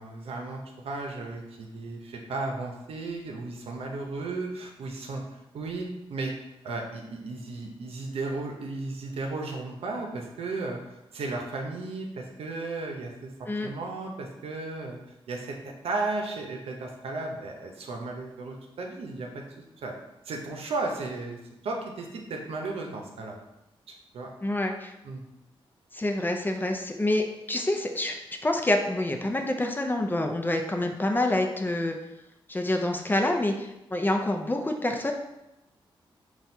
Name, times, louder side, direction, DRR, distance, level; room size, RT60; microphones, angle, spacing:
voice 1, 0.0-5.2 5.5-6.3 6.6-10.8 11.1-13.3 13.6-15.0 15.3-19.3 19.8-19.9 20.3-21.4 21.6-23.4 23.9-24.3 25.0-25.2, right 3 dB, 85° right, 1 dB, 0.7 m, -34 dB
voice 2, 24.4-24.9 25.9-28.2 28.4-32.0 32.5-35.1, left 1 dB, 20° left, 3 dB, 0.5 m, -27 dB
4.1 x 2.4 x 4.4 m, 0.92 s
cardioid pair, 80°, 10 cm